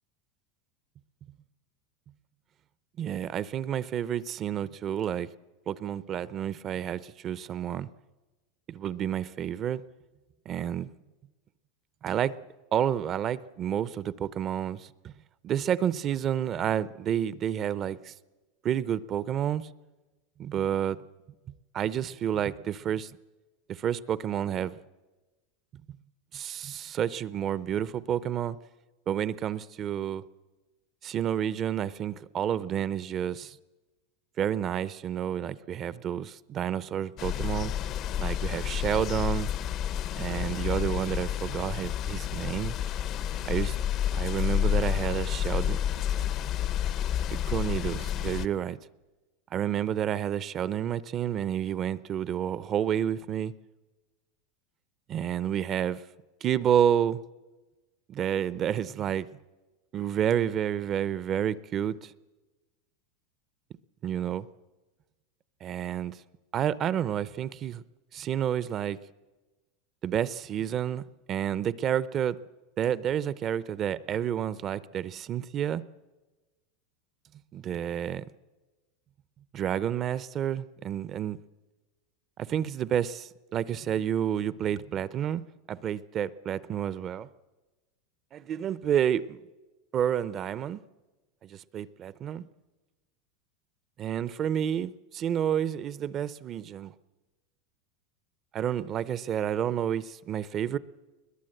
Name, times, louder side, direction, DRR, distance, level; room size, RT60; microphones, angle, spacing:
voice 1, 3.0-5.3 5.7-7.9 8.7-9.8 10.5-10.9 12.0-12.4 12.7-15.1 15.4-18.1 18.6-19.7 20.4-21.0 21.7-23.1 23.7-24.8 26.3-28.6 29.1-30.2 31.0-33.6 34.4-37.7 38.2-39.5 40.2-42.7 43.4-43.8 44.1-45.8 47.5-48.8 49.5-53.5 55.1-56.0 56.4-57.2 58.1-59.3 59.9-62.1 64.0-64.5 65.6-66.2 66.5-67.8 68.1-69.0 70.0-71.0 71.3-72.4 72.8-75.8 77.5-78.3 79.5-81.4 82.4-85.4 85.7-87.3 88.3-89.4 89.9-90.8 91.4-92.4 94.0-96.9 98.5-100.8, right 9 dB, 35° right, 0.6 m, -30 dB
sound 1, 37.2-48.5, left 10 dB, 45° left, 0.7 m, -30 dB
21.0 x 20.5 x 7.8 m
supercardioid pair, 130°, 0 cm